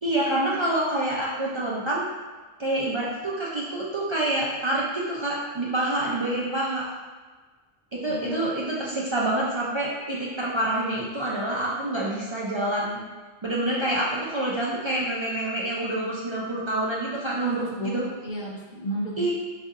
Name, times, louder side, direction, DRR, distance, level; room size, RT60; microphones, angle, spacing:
voice 1, 0.0-2.0 2.6-6.9 7.9-13.0 13.4-18.0 19.2-19.3, right 1 dB, 40° right, -6 dB, 0.4 m, -27 dB
voice 2, 8.1-8.5 17.4-19.3, equal, 60° left, -2 dB, 0.6 m, -33 dB
4.8 x 2.5 x 2.7 m, 1.3 s
omnidirectional pair, 1.1 m